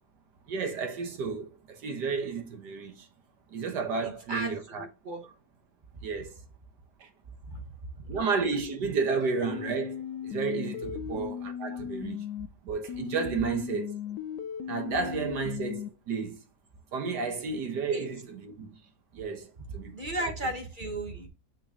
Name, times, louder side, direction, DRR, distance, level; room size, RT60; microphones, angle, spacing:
voice 1, 0.5-3.1 3.5-4.9 6.0-6.4 7.0-7.1 8.1-12.3 12.6-14.0 14.6-16.4 16.9-18.7 19.1-20.3, right 5 dB, 90° right, 1.9 m, -32 dB
voice 2, 4.0-5.3 7.4-7.6 8.0-8.2 17.9-18.0 19.9-21.3, right 1 dB, 30° right, 1.6 m, -35 dB
sound 1, 9.5-12.5 12.9-15.9, left 9 dB, 80° left, 1.1 m, -37 dB
6.5 x 6.1 x 2.9 m
omnidirectional pair, 1.8 m